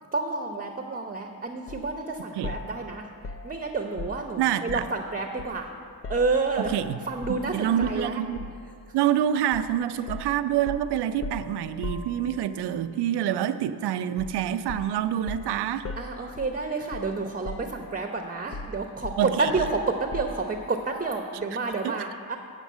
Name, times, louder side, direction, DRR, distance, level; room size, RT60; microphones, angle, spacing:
voice 1, 0.1-3.1 3.4-5.7 6.1-6.8 7.0-8.2 16.0-22.4, right 3 dB, 20° right, 4 dB, 0.8 m, -29 dB
sound 1, 1.7-1.9 2.4-5.0 5.4-6.9 7.2-7.4 7.8-8.7 9.5-9.7 10.1-12.6 14.2-14.4 14.7-17.2 17.4-18.1 18.5-20.5, left 2 dB, 35° left, 0.5 m, -39 dB
voice 2, 4.4-4.8 6.7-7.0 7.5-8.5 8.9-15.9 19.2-19.5 21.8-22.0, right 10 dB, 75° right, 11 dB, 0.5 m, -26 dB
8.1 x 5.3 x 7.3 m, 2.2 s
supercardioid pair, 55°, 40 cm